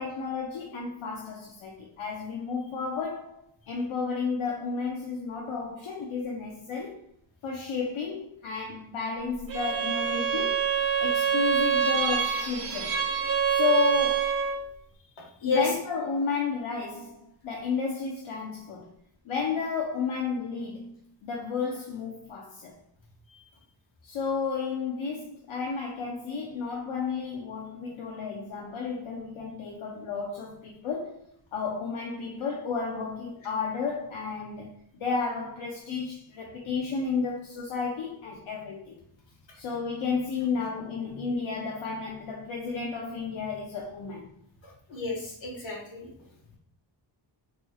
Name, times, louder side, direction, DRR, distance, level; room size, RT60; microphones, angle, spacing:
voice 1, 0.0-3.3 3.7-7.0 7.4-10.6 11.0-13.0 13.4-14.3 15.4-17.2 17.4-18.9 19.3-20.9 21.2-22.7 24.0-31.2 31.5-38.9 39.5-44.3, left 5 dB, 85° left, -1 dB, 0.7 m, -32 dB
Bowed string instrument, 9.5-14.7, right 7 dB, 45° right, 0.5 m, -26 dB
voice 2, 44.6-46.1, left 3 dB, 70° left, -2 dB, 1.5 m, -30 dB
4.0 x 3.1 x 2.3 m, 0.70 s
wide cardioid pair, 140°, 47 cm